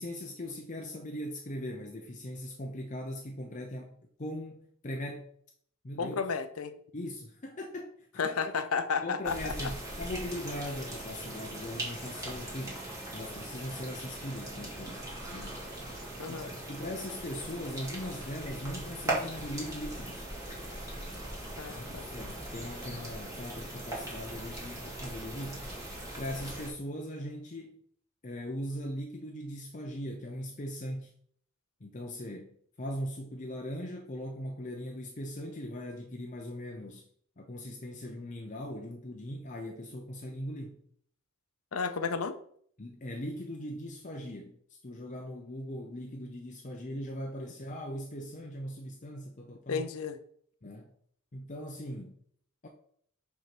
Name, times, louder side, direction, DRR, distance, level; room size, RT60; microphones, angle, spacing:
voice 1, 0.0-3.9 4.2-5.3 5.8-6.1 6.9-8.3 9.0-12.8 13.1-15.0 15.3-15.7 16.3-20.3 21.7-25.7 26.2-27.8 28.2-31.1 31.8-37.0 37.4-40.8 42.8-49.8 50.6-50.9 51.3-52.1 52.6-52.7, equal, 35° left, 0.7 m, -40 dB
voice 2, 6.0-6.7 8.2-9.5 16.2-16.5 21.6-22.1 41.7-42.3 49.7-50.2, left 5 dB, 85° left, 0.7 m, -32 dB
sound 1, 9.2-26.7, right 1 dB, 15° right, 2.2 m, -40 dB
5.3 x 4.6 x 5.9 m
head